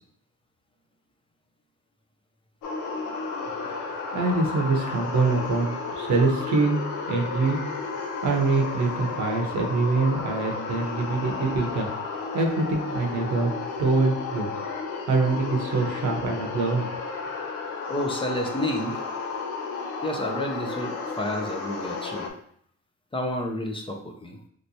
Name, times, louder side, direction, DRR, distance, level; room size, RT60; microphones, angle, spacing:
sound 1, 2.6-22.3, left 4 dB, 85° left, 0.6 m, -33 dB
voice 1, 4.1-6.8 7.1-7.6 8.2-11.9 12.3-13.5 13.8-14.5 15.0-16.9 17.2-17.3, right 3 dB, 65° right, 2 dB, 0.9 m, -24 dB
voice 2, 17.9-19.0 20.0-22.4 23.1-24.4, left 1 dB, 15° left, 2 dB, 0.5 m, -30 dB
3.2 x 2.9 x 2.7 m, 0.65 s
cardioid pair, 90°, 30 cm